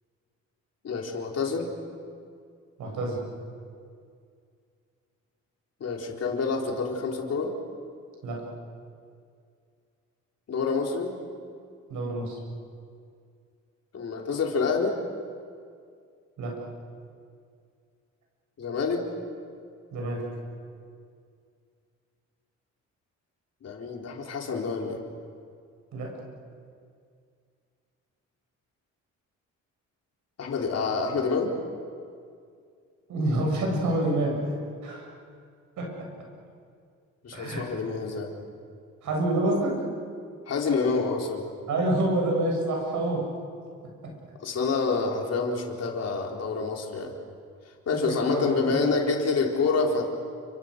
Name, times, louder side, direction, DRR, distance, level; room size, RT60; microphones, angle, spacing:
voice 1, 0.8-1.7 5.8-7.5 10.5-11.1 13.9-14.9 18.6-19.0 23.6-25.0 30.4-31.5 37.2-38.3 40.5-41.5 44.4-47.2 47.9-50.0, left 4 dB, 55° left, 1 dB, 4.2 m, -27 dB
voice 2, 2.8-3.2 8.2-8.4 11.9-12.4 16.4-16.6 19.9-20.2 25.9-26.1 33.1-34.4 34.8-35.1 35.8-36.1 37.3-37.7 39.0-39.8 41.7-43.3 44.0-44.1 47.9-48.9, right 1 dB, 75° right, 0 dB, 7.8 m, -27 dB
29.5 x 25.5 x 6.7 m, 2.3 s
cardioid pair, 90°, 30 cm